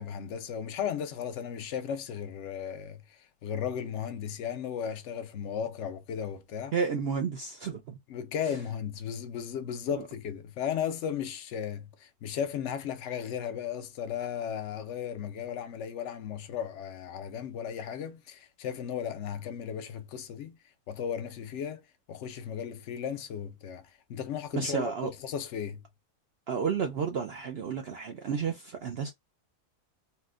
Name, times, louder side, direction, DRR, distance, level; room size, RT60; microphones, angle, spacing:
voice 1, 0.0-6.7 8.1-20.6 20.9-21.8 22.1-25.8, left 8 dB, 65° left, 0.7 m, -35 dB
voice 2, 6.7-8.0 24.5-25.1 26.5-29.1, right 6 dB, 75° right, 0.5 m, -31 dB
4.2 x 2.1 x 2.4 m
omnidirectional pair, 1.7 m